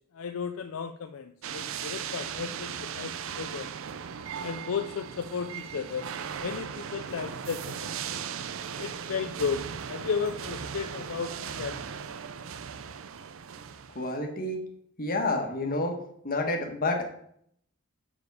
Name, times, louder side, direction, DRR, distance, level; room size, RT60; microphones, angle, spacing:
voice 1, 0.1-3.7 4.4-6.1 6.4-7.9 8.8-12.0, left 6 dB, 70° left, 7 dB, 0.5 m, -34 dB
sound 1, 1.4-14.1, right 7 dB, 70° right, 0.5 m, -38 dB
voice 2, 13.9-14.6 15.0-17.1, left 2 dB, 45° left, 2 dB, 1.4 m, -29 dB
7.0 x 6.9 x 4.8 m, 0.69 s
head